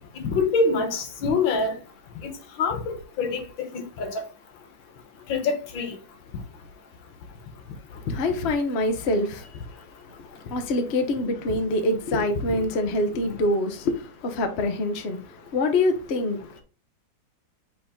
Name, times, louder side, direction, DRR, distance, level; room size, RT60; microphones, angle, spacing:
voice 1, 0.2-1.8 2.6-4.2 5.3-6.0, left 4 dB, 80° left, 1.9 m, -25 dB
voice 2, 7.9-9.8 10.2-16.6, left 2 dB, 45° left, 1.0 m, -26 dB
7.7 x 3.8 x 3.7 m
omnidirectional pair, 2.1 m